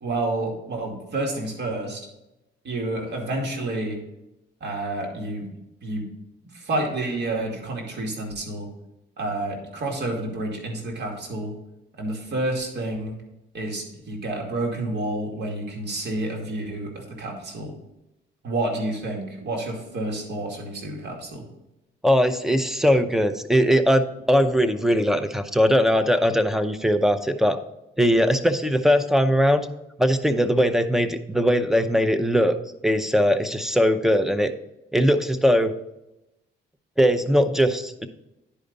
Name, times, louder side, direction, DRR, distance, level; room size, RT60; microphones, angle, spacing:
voice 1, 0.0-2.1 2.6-4.0 4.6-5.5 5.8-6.1 6.4-8.7 9.2-11.5 12.0-13.2 13.5-17.7 18.4-21.5, right 2 dB, 60° right, 0 dB, 2.3 m, -29 dB
voice 2, 22.0-27.6 28.0-29.7 30.0-32.5 32.8-34.5 34.9-35.7 37.0-38.1, equal, ahead, 10 dB, 0.6 m, -20 dB
10.0 x 4.9 x 4.0 m, 0.91 s
cardioid pair, 90°, 20 cm